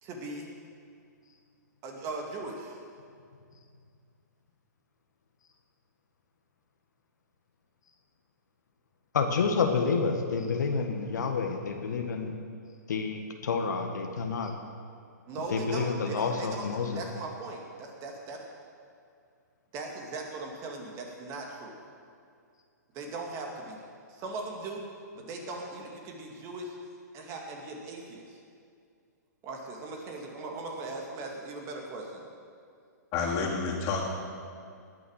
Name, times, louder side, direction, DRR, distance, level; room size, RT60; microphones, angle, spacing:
voice 1, 0.0-0.5 1.8-2.8 15.3-18.4 19.7-21.7 22.9-23.8 24.1-24.8 25.1-26.8 27.1-28.4 29.4-32.3, right 3 dB, 30° right, 1 dB, 2.2 m, -39 dB
voice 2, 9.1-12.3 12.9-14.5 15.5-17.0, left 5 dB, 70° left, 4 dB, 1.6 m, -29 dB
voice 3, 33.1-34.1, left 4 dB, 30° left, -3 dB, 3.0 m, -29 dB
19.5 x 7.0 x 6.6 m, 2.3 s
hypercardioid pair, 135°, 10 cm